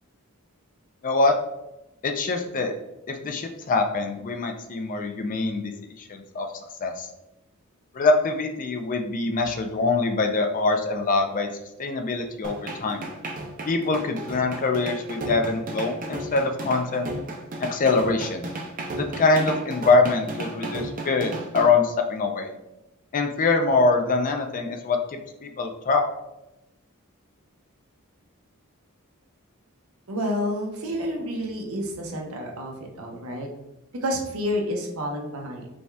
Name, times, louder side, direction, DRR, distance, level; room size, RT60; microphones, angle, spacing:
voice 1, 1.0-1.4 2.0-2.7 3.1-5.7 6.0-6.5 6.8-7.1 7.9-11.5 11.8-13.1 13.6-17.1 17.7-18.5 18.9-22.5 23.1-26.0, left 3 dB, 35° left, 5 dB, 0.4 m, -24 dB
sound 1, 12.4-21.7, right 1 dB, 40° right, 0.5 m, -34 dB
voice 2, 30.1-33.5 34.0-35.7, equal, 70° right, 1 dB, 0.9 m, -29 dB
5.2 x 2.3 x 3.3 m, 0.90 s
head